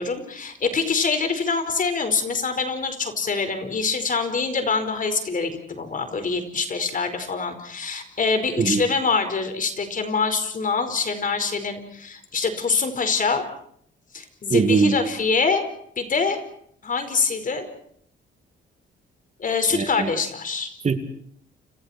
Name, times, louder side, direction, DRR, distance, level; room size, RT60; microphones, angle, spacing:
voice 1, 0.0-13.4 14.1-15.6 16.0-16.4 16.8-17.7 19.4-20.7, left 4 dB, 40° left, 8 dB, 4.9 m, -25 dB
voice 2, 14.5-15.0 19.7-20.1 20.8-21.0, right 5 dB, 35° right, 8 dB, 2.5 m, -20 dB
30.0 x 28.0 x 4.5 m, 0.64 s
cardioid pair, 90°, 20 cm